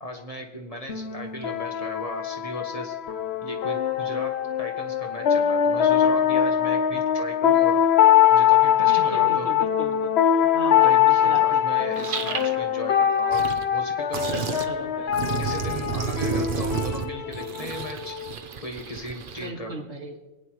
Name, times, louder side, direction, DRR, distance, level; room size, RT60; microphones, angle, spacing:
voice 1, 0.0-2.9 3.4-7.8 8.3-9.5 10.8-14.3 15.4-18.2 18.6-19.7, equal, 35° left, 2 dB, 1.5 m, -36 dB
sound 1, 0.9-18.3, left 9 dB, 75° left, 1.0 m, -22 dB
voice 2, 8.8-11.8 14.2-15.2 15.9-16.3 19.4-20.2, right 2 dB, 90° right, 1 dB, 2.1 m, -37 dB
sound 2, 11.4-11.5 11.9-12.6 13.1-13.6 14.1-14.7 15.1-19.5, right 6 dB, 55° right, 0.9 m, -31 dB
25.5 x 9.2 x 3.1 m, 1.2 s
omnidirectional pair, 1.1 m